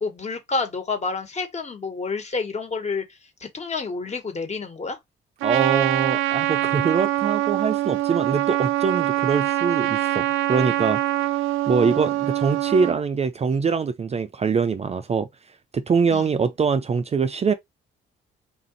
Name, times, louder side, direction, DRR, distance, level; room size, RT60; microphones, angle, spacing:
voice 1, 0.0-5.0 11.8-12.0 16.1-16.3, left 4 dB, 35° left, 1.5 m, -29 dB
voice 2, 5.4-11.0 11.7-15.3 15.7-17.5, right 5 dB, 30° right, 0.5 m, -23 dB
Trumpet, 5.4-13.0, right 16 dB, 90° right, 0.4 m, -24 dB
3.8 x 2.5 x 3.9 m
cardioid pair, 90°, 20 cm